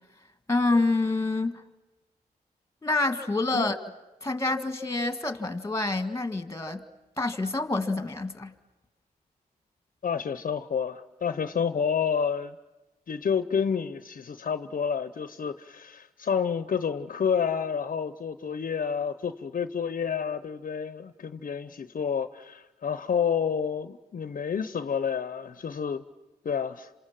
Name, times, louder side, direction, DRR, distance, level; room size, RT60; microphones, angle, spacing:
voice 1, 0.5-1.5 2.8-3.8 4.2-6.9 7.2-8.5, left 2 dB, 20° left, 2.0 m, -27 dB
voice 2, 10.0-12.5 13.1-26.0 26.4-26.9, left 7 dB, 60° left, 0.8 m, -29 dB
27.5 x 27.0 x 7.6 m
cardioid pair, 70°, 16 cm